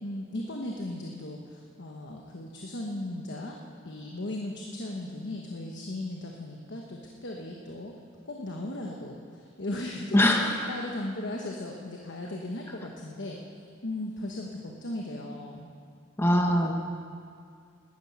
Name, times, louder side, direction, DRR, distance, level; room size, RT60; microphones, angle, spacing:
voice 1, 0.0-3.5 3.8-7.9 8.2-13.4 13.8-15.7, left 1 dB, 65° left, 0 dB, 1.2 m, -37 dB
voice 2, 10.1-10.7 16.2-16.8, left 1 dB, 10° left, 2 dB, 1.0 m, -22 dB
13.0 x 9.8 x 8.6 m, 2.2 s
head